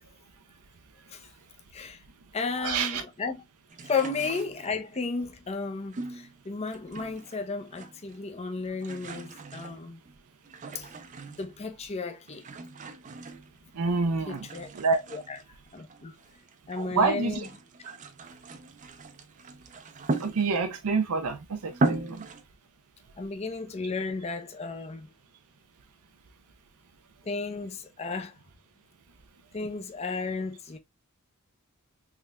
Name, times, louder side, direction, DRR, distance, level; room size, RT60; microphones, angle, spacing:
voice 1, 1.7-2.0 2.3-3.4 3.8-10.0 10.7-10.9 11.3-12.5 14.3-14.7 15.1-15.4 15.7-16.1 16.7-17.5 23.2-25.1 27.2-28.4 29.5-30.8, left 4 dB, 30° left, 0.5 m, -34 dB
voice 2, 2.6-3.0 13.7-14.5 14.7-15.0 16.8-17.5 17.9-18.0 20.2-22.2, right 4 dB, 85° right, 0.6 m, -27 dB
sound 1, 3.7-5.0 5.9-7.4 7.6-8.3 8.6-11.7 12.3-13.9 14.3-16.9 17.3-20.8 21.3-21.4 21.7-22.4, right 2 dB, 35° right, 0.5 m, -37 dB
3.7 x 3.3 x 2.3 m
head